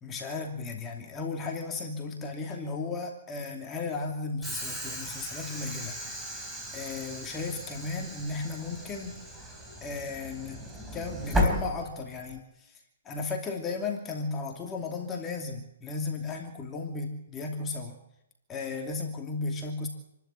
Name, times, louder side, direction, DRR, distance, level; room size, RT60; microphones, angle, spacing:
voice 1, 0.0-5.9 6.7-9.2 9.8-10.6 10.9-12.8 13.0-18.0 18.5-19.9, left 4 dB, 15° left, 2 dB, 2.7 m, -35 dB
Train / Sliding door, 4.4-12.4, left 1 dB, 5° right, 3.7 m, -35 dB
28.0 x 12.5 x 9.0 m, 0.87 s
hypercardioid pair, 145°, 0 cm